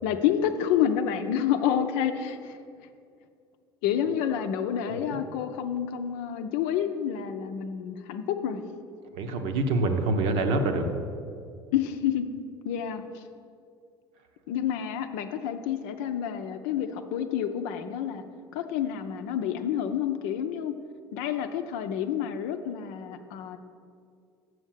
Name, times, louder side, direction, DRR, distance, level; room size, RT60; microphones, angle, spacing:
voice 1, 0.0-2.6 3.8-8.6 11.7-12.3 12.6-13.2 14.5-18.2 18.5-20.7 21.1-23.6, left 9 dB, 55° left, 8 dB, 0.6 m, -29 dB
voice 2, 9.2-10.9, right 2 dB, 55° right, 6 dB, 0.9 m, -26 dB
7.1 x 6.3 x 6.6 m, 2.3 s
figure-of-eight pair, 60°, 13 cm